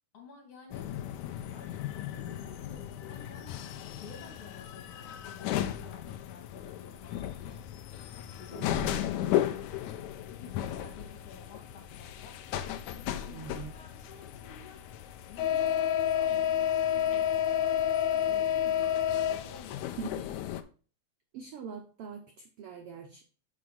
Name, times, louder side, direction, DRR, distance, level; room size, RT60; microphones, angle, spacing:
voice 1, 0.1-0.9 1.5-7.6 8.3-8.8 10.3-12.5 12.9-14.8 15.3-19.0 19.3-20.0, left 5 dB, 55° left, 0 dB, 3.3 m, -52 dB
sound 1, 0.7-20.6, left 10 dB, 80° left, 1.9 m, -32 dB
voice 2, 8.5-9.0 13.3-13.8 20.0-20.3 21.3-23.2, right 6 dB, 75° right, 4 dB, 1.3 m, -42 dB
6.4 x 4.7 x 5.4 m, 0.39 s
omnidirectional pair, 3.5 m